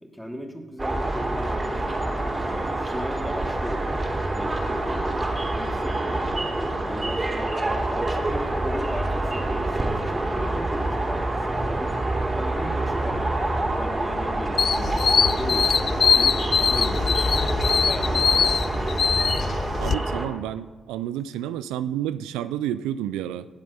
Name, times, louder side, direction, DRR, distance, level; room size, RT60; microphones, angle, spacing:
voice 1, 0.0-2.0 2.5-4.0 4.3-5.2 5.5-6.4 6.9-12.0 12.3-13.3 13.8-15.8 16.1-18.5, equal, 5° left, 2 dB, 2.9 m, -36 dB
sound 1, 0.8-20.3, right 2 dB, 30° right, 3.2 m, -26 dB
sound 2, 14.6-19.9, left 6 dB, 55° left, 0.4 m, -22 dB
voice 2, 19.8-23.5, right 11 dB, 80° right, 14 dB, 0.3 m, -30 dB
18.0 x 7.4 x 5.5 m, 1.4 s
hypercardioid pair, 40°, 0 cm